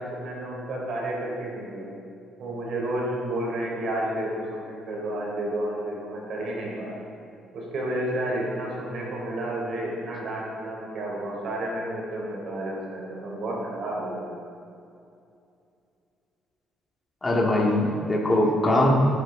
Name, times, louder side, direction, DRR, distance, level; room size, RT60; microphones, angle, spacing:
voice 1, 0.0-1.9 2.4-7.0 7.5-14.3, right 1 dB, 60° right, -2 dB, 3.5 m, -31 dB
voice 2, 17.2-18.9, left 1 dB, 20° left, -3 dB, 2.1 m, -21 dB
18.0 x 9.6 x 3.9 m, 2.6 s
cardioid pair, 115°, 0 cm